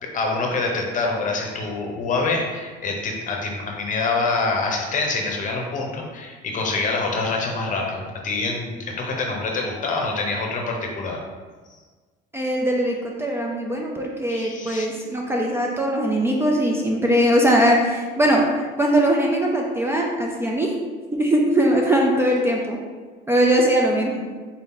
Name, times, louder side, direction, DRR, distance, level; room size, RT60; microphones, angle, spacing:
voice 1, 0.0-11.2 14.3-14.9, left 3 dB, 40° left, 1 dB, 0.8 m, -26 dB
voice 2, 12.3-18.5 18.8-20.7 21.1-22.8 23.3-24.3, right 1 dB, 10° right, -1 dB, 0.4 m, -20 dB
4.3 x 2.7 x 3.7 m, 1.4 s
cardioid pair, 130°, 20 cm